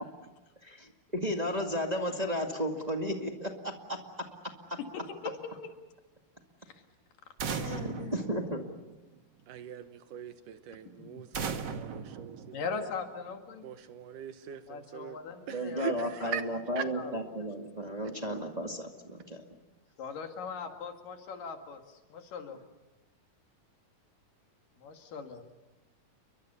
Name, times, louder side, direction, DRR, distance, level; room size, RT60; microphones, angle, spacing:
voice 1, 0.6-4.0 4.7-4.8 7.5-8.6 15.5-19.4, equal, 15° right, 2 dB, 1.5 m, -34 dB
voice 2, 4.8-5.5 6.7-6.8 7.6-8.5 11.0-11.2 12.5-13.6 14.7-16.3 16.7-17.5 20.0-22.6 24.8-25.5, left 5 dB, 80° left, 5 dB, 3.8 m, -40 dB
sound 1, 7.4-9.2 11.3-13.1, right 6 dB, 50° right, 1.3 m, -38 dB
voice 3, 9.5-12.6 13.6-15.2 15.5-16.4 16.8-16.9, right 9 dB, 75° right, 10 dB, 2.7 m, -41 dB
30.0 x 23.5 x 7.0 m, 1.1 s
omnidirectional pair, 3.8 m